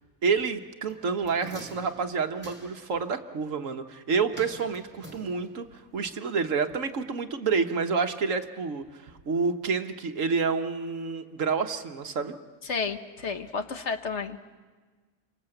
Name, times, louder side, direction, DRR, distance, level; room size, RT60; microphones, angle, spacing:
voice 1, 0.2-5.6 5.9-12.3, right 5 dB, 60° right, 7 dB, 1.5 m, -28 dB
sound 1, 0.9-3.0 4.3-5.8 6.1-6.2, right 1 dB, 5° right, 3.2 m, -47 dB
voice 2, 12.6-14.6, left 5 dB, 55° left, 8 dB, 1.4 m, -32 dB
29.0 x 24.5 x 7.8 m, 1.4 s
omnidirectional pair, 1.5 m